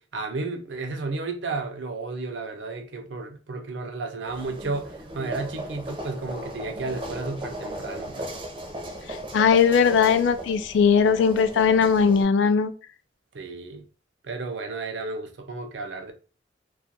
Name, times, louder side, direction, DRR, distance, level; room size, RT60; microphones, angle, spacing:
voice 1, 0.0-8.3 13.3-13.9 14.2-16.1, right 3 dB, 75° right, 0.5 m, -33 dB
sound 1, 4.2-12.2, right 1 dB, 25° right, 0.5 m, -37 dB
voice 2, 9.3-12.7, left 6 dB, 80° left, 0.3 m, -19 dB
2.3 x 2.2 x 2.7 m
head